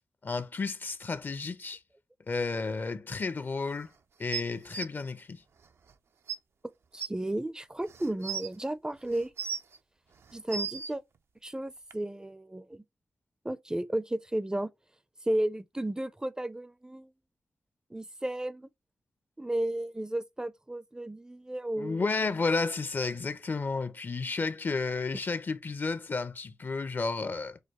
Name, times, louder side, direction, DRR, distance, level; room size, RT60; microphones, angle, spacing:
voice 1, 0.2-1.8 2.3-3.9 4.2-5.4 21.8-27.6, left 4 dB, 50° left, 0.5 m, -32 dB
sound 1, 4.3-4.9 5.9-6.0 6.3-6.4 7.0-7.1 7.9-8.5 9.1-9.8 10.3-10.9 11.9-12.0, right 6 dB, 70° right, 0.4 m, -35 dB
voice 2, 6.9-9.3 10.3-11.0 11.4-12.8 13.4-14.7 15.2-17.1 17.9-18.7 19.4-22.1, right 1 dB, 15° right, 0.4 m, -33 dB
6.4 x 2.3 x 3.0 m
cardioid pair, 55°, 4 cm